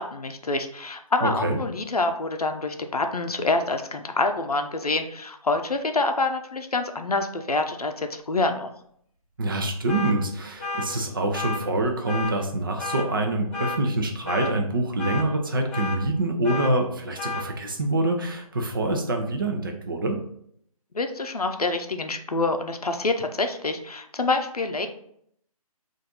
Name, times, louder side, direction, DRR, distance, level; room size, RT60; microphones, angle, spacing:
voice 1, 0.0-8.7 20.9-24.9, left 3 dB, 80° left, 6 dB, 0.6 m, -26 dB
voice 2, 1.2-1.6 9.4-20.2, right 2 dB, 35° right, 3 dB, 0.6 m, -25 dB
sound 1, 9.9-10.1 10.6-10.9 11.3-11.6 12.1-12.3 12.8-13.1 13.5-13.8 14.2-14.5 15.0-15.2 15.7-16.0 16.4-16.7 17.2-17.4, left 3 dB, 10° left, 0.5 m, -31 dB
4.2 x 2.6 x 3.9 m, 0.68 s
figure-of-eight pair, 150°, 19 cm